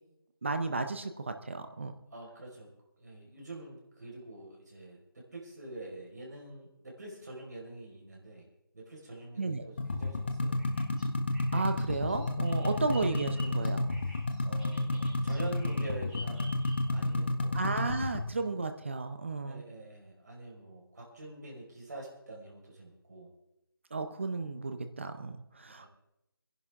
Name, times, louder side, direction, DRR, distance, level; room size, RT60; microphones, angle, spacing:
voice 1, 0.4-1.9 9.4-9.6 11.5-13.9 17.5-19.6 23.9-25.9, right 3 dB, 30° right, 8 dB, 0.8 m, -33 dB
voice 2, 2.1-2.7 3.0-8.5 8.7-10.6 12.7-12.8 14.4-16.5 16.9-17.8 19.4-23.3 25.6-25.9, right 2 dB, 50° right, -2 dB, 5.2 m, -46 dB
sound 1, 9.8-18.3, left 2 dB, 30° left, 0.9 m, -31 dB
Bird vocalization bird call bird song, 10.6-17.1, left 1 dB, ahead, 5.0 m, -50 dB
23.5 x 11.0 x 3.7 m, 0.87 s
figure-of-eight pair, 170°, 12 cm